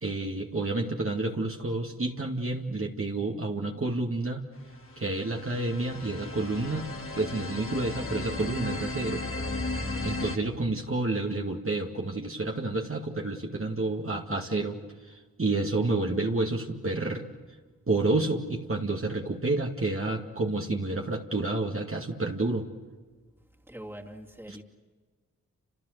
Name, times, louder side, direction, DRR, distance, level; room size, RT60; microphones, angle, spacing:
voice 1, 0.0-4.4 5.0-6.9 7.1-9.2 10.0-14.8 15.4-17.2 17.9-22.7 24.5-24.6, right 2 dB, 40° right, 1 dB, 2.2 m, -29 dB
sound 1, 5.0-10.4, left 3 dB, 40° left, 2.4 m, -35 dB
voice 2, 23.7-24.6, right 1 dB, 5° right, 1 dB, 2.8 m, -43 dB
29.5 x 27.5 x 6.7 m, 1.4 s
cardioid pair, 45°, 33 cm